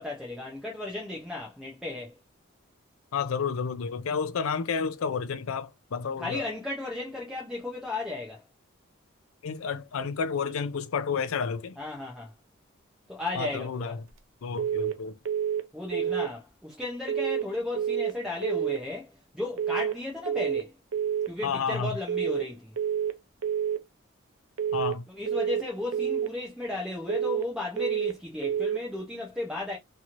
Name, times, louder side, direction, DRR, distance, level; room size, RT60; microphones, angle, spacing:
voice 1, 0.0-2.2 6.2-8.4 11.8-12.3 13.1-14.0 15.7-20.7 21.3-22.7 25.1-29.8, left 2 dB, 5° right, 0.5 m, -35 dB
voice 2, 3.1-6.4 9.4-11.8 13.3-14.0 14.4-15.2 21.4-21.9 24.7-25.1, left 5 dB, 75° left, 0.4 m, -30 dB
sound 1, 14.6-15.0 15.3-15.7 15.9-16.3 17.1-17.5 17.8-18.2 18.4-18.8 19.6-20.0 20.3-20.7 20.9-21.3 22.1-22.5 22.8-23.2 23.4-23.8 24.6-25.0 25.3-25.7 25.9-26.3 27.1-27.5 27.8-28.2 28.4-28.8, right 8 dB, 70° right, 0.5 m, -28 dB
3.0 x 2.8 x 2.4 m
head